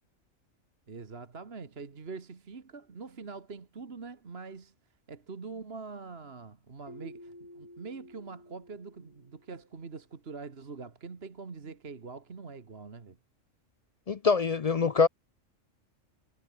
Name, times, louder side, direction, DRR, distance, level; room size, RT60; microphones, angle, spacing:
voice 1, 0.9-4.7 5.1-13.2, right 4 dB, 50° right, 1.9 m, -44 dB
Keyboard (musical), 6.9-9.7, left 1 dB, 30° left, 6.4 m, -51 dB
voice 2, 14.1-15.1, left 5 dB, 50° left, 0.4 m, -24 dB
omnidirectional pair, 1.3 m